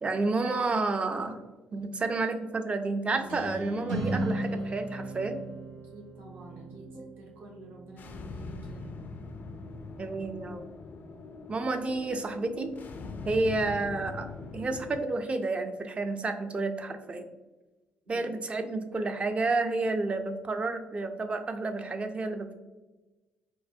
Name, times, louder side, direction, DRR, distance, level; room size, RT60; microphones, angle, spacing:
voice 1, 0.0-1.4 1.7-5.4 10.0-10.6 11.5-12.7 13.2-14.3 14.5-17.3 18.1-22.5, right 3 dB, 30° right, 7 dB, 0.5 m, -30 dB
sound 1, 3.1-8.8, right 1 dB, 90° right, 0.7 m, -36 dB
voice 2, 5.9-9.0 18.0-18.3, right 1 dB, 70° right, -4 dB, 1.1 m, -49 dB
sound 2, 8.0-15.0, left 3 dB, 55° left, 0.4 m, -42 dB
4.6 x 2.0 x 2.7 m, 1.1 s
supercardioid pair, 65°, 4 cm